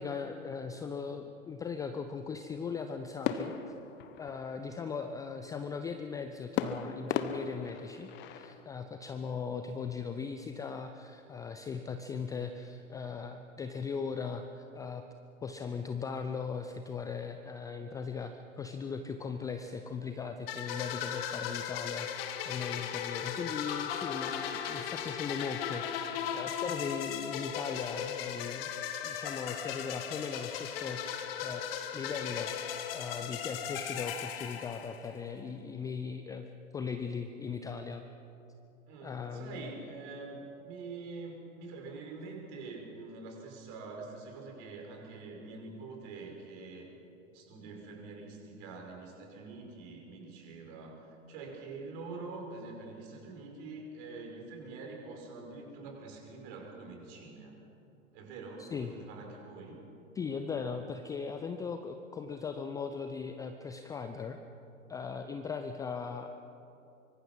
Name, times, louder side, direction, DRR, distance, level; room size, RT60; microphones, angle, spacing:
voice 1, 0.0-3.5 4.2-15.1 15.4-28.7 29.0-31.7 31.9-36.5 36.7-38.0 39.0-39.7 58.6-58.9 60.1-64.4 64.9-66.3, left 5 dB, 10° left, 7 dB, 0.5 m, -39 dB
sound 1, 3.2-4.8 6.6-8.6, left 8 dB, 25° left, 1.2 m, -36 dB
sound 2, 20.5-35.2, left 9 dB, 45° left, 1.9 m, -37 dB
voice 2, 38.9-46.9 47.3-57.5 58.1-59.8, right 3 dB, 40° right, 1 dB, 5.7 m, -45 dB
24.5 x 24.0 x 5.6 m, 2.9 s
figure-of-eight pair, 100°, 40 cm